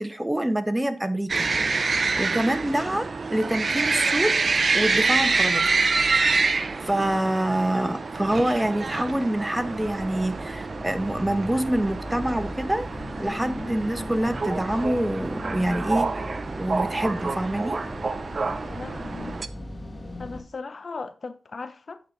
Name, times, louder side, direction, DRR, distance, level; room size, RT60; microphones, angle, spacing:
voice 1, 0.0-4.3 4.7-5.7 6.4-12.9 13.2-16.1 16.6-17.8, right 1 dB, 15° right, 0.9 m, -26 dB
sound 1, 1.3-19.5, right 4 dB, 55° right, 0.5 m, -27 dB
sound 2, 7.2-20.4, equal, 20° left, 1.0 m, -39 dB
voice 2, 18.6-19.4 20.2-22.0, left 4 dB, 60° left, 0.5 m, -37 dB
8.5 x 4.0 x 4.5 m
cardioid pair, 50°, 0 cm